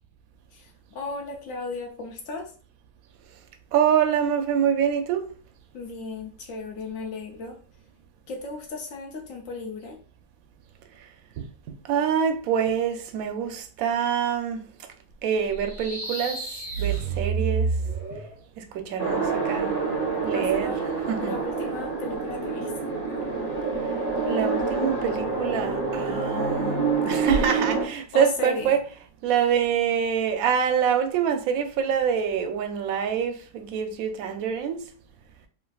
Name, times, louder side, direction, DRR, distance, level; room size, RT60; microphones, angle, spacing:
voice 1, 0.5-2.5 5.7-7.6 8.3-10.0 20.3-20.8 21.2-22.7 28.1-28.7, left 3 dB, 70° left, 0.8 m, -35 dB
voice 2, 3.7-5.3 11.9-14.6 15.2-16.4 16.8-17.7 18.6-19.7 20.2-20.7 21.1-21.4 24.3-28.8 29.2-34.8, right 8 dB, 70° right, 0.8 m, -25 dB
sound 1, 15.5-18.4, right 5 dB, 20° left, 1.3 m, -28 dB
sound 2, 19.0-27.9, right 4 dB, 35° left, 0.6 m, -27 dB
3.4 x 2.5 x 2.3 m
omnidirectional pair, 1.8 m